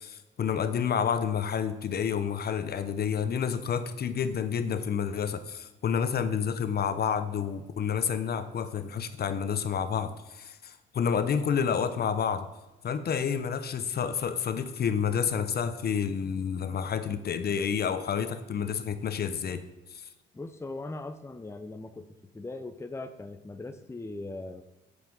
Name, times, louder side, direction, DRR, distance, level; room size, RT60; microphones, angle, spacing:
voice 1, 0.0-12.5 12.8-19.6 19.9-20.1, left 7 dB, 50° left, 11 dB, 0.9 m, -29 dB
voice 2, 20.3-24.6, left 2 dB, 15° left, 8 dB, 0.7 m, -40 dB
8.2 x 7.7 x 5.4 m, 1.0 s
cardioid pair, 90°, 20 cm